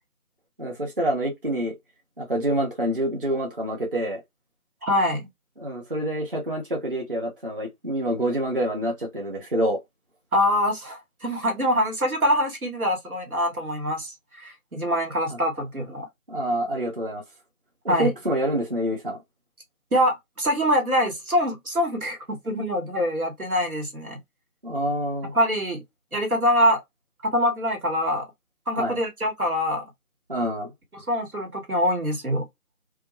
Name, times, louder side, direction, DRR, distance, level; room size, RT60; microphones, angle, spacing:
voice 1, 0.6-1.7 2.2-4.2 5.6-9.8 15.3-15.4 16.3-17.2 17.8-19.2 24.6-25.3 28.8-29.0 30.3-30.7, right 1 dB, 40° right, 0.8 m, -27 dB
voice 2, 4.8-5.3 10.3-16.1 17.9-18.1 19.9-24.2 25.3-25.8 26.1-26.8 27.2-28.2 28.7-29.8 30.9-32.5, equal, 90° right, 1.4 m, -24 dB
2.3 x 2.2 x 2.9 m
figure-of-eight pair, 160°, 43 cm